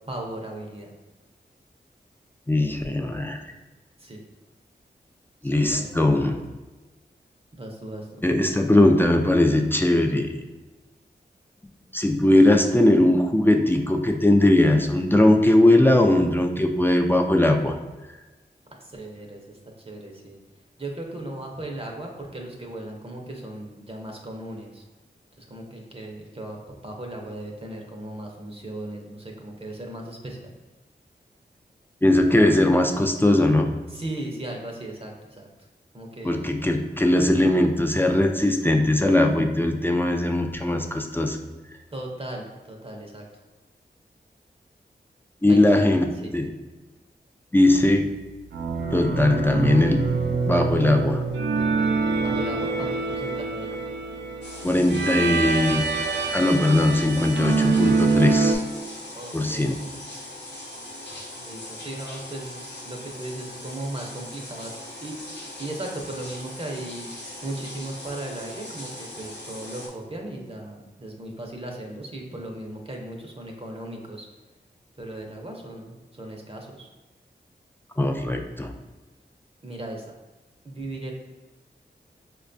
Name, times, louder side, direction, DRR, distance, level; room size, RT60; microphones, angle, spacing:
voice 1, 0.1-0.9 4.0-4.2 5.4-6.3 7.5-8.2 18.8-19.6 19.8-20.4 20.8-24.8 25.4-30.5 33.9-35.5 35.9-36.5 41.9-43.2 45.5-45.8 46.2-46.3 52.2-53.7 59.1-59.9 61.4-65.2 65.6-74.3 75.0-76.9 79.6-80.0 80.6-81.1, right 1 dB, 30° right, 0 dB, 0.6 m, -37 dB
voice 2, 2.5-3.4 5.4-6.4 8.2-10.3 11.9-17.7 32.0-33.8 36.2-41.4 45.4-46.5 47.5-48.2 48.9-50.1 50.4-51.2 54.6-55.9 56.3-58.6 59.3-59.7 78.0-78.7, left 1 dB, 10° left, 3 dB, 0.3 m, -20 dB
sound 1, 48.5-58.6, right 4 dB, 85° right, 0.4 m, -25 dB
sound 2, 54.4-69.9, left 1 dB, 75° left, 0.8 m, -40 dB
4.6 x 2.2 x 2.6 m, 1.2 s
cardioid pair, 40°, 18 cm